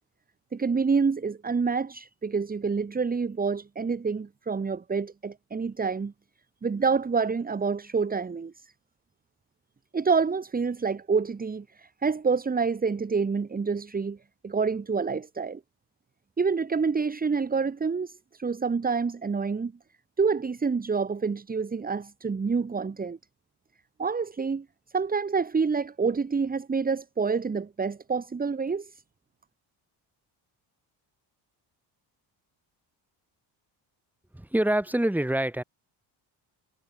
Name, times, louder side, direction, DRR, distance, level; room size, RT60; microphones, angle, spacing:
voice 1, 0.5-6.1 6.6-8.7 9.9-14.2 14.4-15.6 16.4-19.7 20.2-23.2 24.0-24.6 24.9-28.9, right 5 dB, 20° right, 2.7 m, -27 dB
voice 2, 34.3-35.6, right 1 dB, 5° right, 5.0 m, -25 dB
cardioid pair, 170°, 42 cm